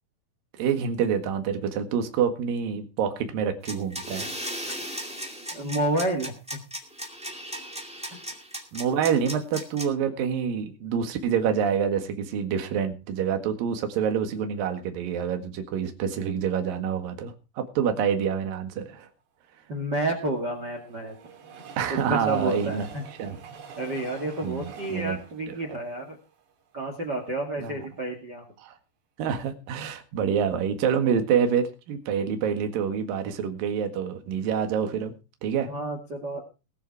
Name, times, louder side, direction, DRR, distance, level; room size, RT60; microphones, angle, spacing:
voice 1, 0.6-4.3 8.7-19.1 21.8-22.9 23.2-23.4 24.4-25.2 27.6-27.7 28.6-28.7 29.2-35.1 35.4-35.7, right 7 dB, 60° right, 6 dB, 3.2 m, -27 dB
sound 1, 3.6-9.8, equal, 5° right, 0.5 m, -36 dB
voice 2, 5.5-6.6 19.7-21.2 22.1-23.0 23.8-26.2 26.7-28.4 35.7-36.5, right 1 dB, 35° right, 4 dB, 1.8 m, -30 dB
Train, 19.8-27.0 27.6-27.7 27.9-28.0, right 6 dB, 80° right, 4.9 m, -46 dB
21.0 x 7.0 x 4.7 m, 0.31 s
omnidirectional pair, 4.9 m